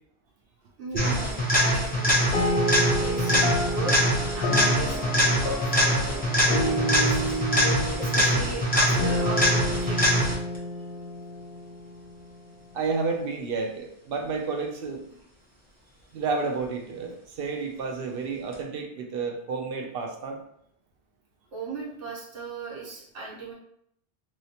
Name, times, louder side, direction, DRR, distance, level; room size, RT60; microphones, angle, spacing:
voice 1, 0.8-2.6 3.0-7.4 8.0-10.2 21.5-23.5, right 3 dB, 80° right, -5 dB, 1.2 m, -37 dB
sound 1, 0.9-10.6 18.5-18.6, equal, 10° left, 0.6 m, -23 dB
sound 2, 2.3-12.1, equal, 60° left, 0.7 m, -30 dB
voice 2, 12.7-15.0 16.1-20.4, right 4 dB, 65° right, 3 dB, 0.7 m, -31 dB
3.0 x 2.8 x 2.8 m, 0.71 s
omnidirectional pair, 1.2 m